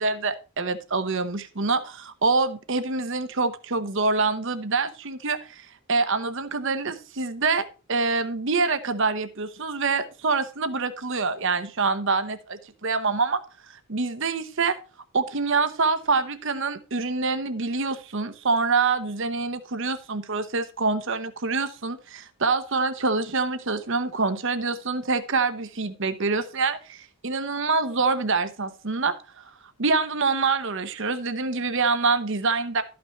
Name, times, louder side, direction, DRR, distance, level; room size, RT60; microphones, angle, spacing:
voice 1, 0.0-13.4 13.7-14.8 15.1-29.4 29.8-32.8, right 4 dB, 60° right, 0.9 m, -26 dB
13.0 x 6.1 x 4.3 m
head